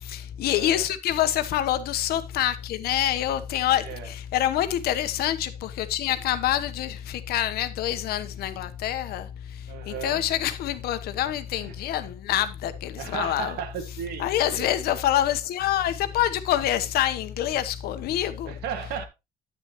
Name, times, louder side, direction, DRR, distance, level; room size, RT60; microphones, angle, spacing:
voice 1, 0.0-13.6 14.2-18.6, left 12 dB, 80° left, 1.1 m, -26 dB
voice 2, 0.5-0.9 3.8-4.1 9.7-10.2 11.6-11.8 12.9-14.7 18.5-19.1, right 8 dB, 90° right, 1.9 m, -35 dB
9.7 x 9.1 x 3.0 m
cardioid pair, 170°, 16 cm